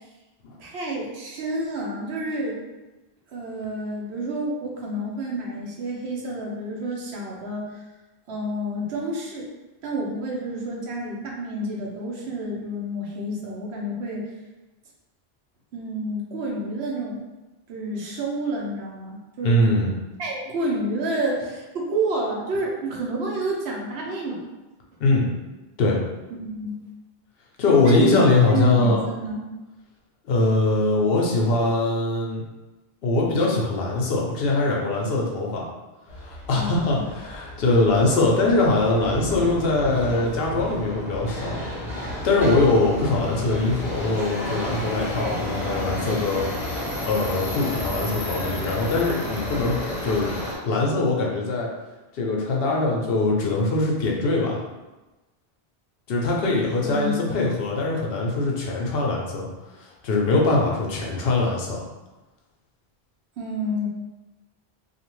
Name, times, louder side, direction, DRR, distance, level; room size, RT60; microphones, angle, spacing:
voice 1, 0.6-2.6 3.3-7.7 8.3-9.5 9.8-14.3 15.7-17.2 17.7-19.6 20.2-24.4 26.3-26.9 27.8-29.5 36.5-37.0 56.8-57.3 63.4-63.9, right 1 dB, 85° right, -2 dB, 1.0 m, -29 dB
voice 2, 19.4-19.9 25.0-25.2 25.8-26.0 27.6-29.0 30.3-32.4 33.0-35.7 36.2-41.6 41.9-50.3 50.6-51.7 52.1-54.6 56.1-59.5 60.0-61.9, left 2 dB, 70° left, -2 dB, 0.8 m, -22 dB
Subway metro underground, 36.1-50.5, left 1 dB, 35° left, 0.9 m, -32 dB
2.7 x 2.4 x 3.0 m, 1.1 s
omnidirectional pair, 1.0 m